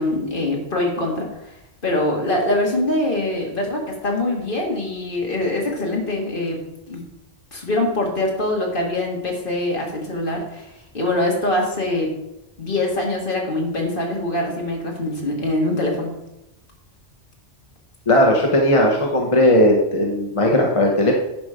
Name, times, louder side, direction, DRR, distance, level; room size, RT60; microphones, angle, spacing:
voice 1, 0.0-1.5 1.8-6.6 6.9-7.0 7.5-12.1 12.6-16.1, left 1 dB, 45° left, 0 dB, 2.0 m, -23 dB
voice 2, 18.1-21.1, left 1 dB, 30° left, 0 dB, 1.1 m, -17 dB
10.5 x 5.1 x 5.0 m, 0.88 s
omnidirectional pair, 1.2 m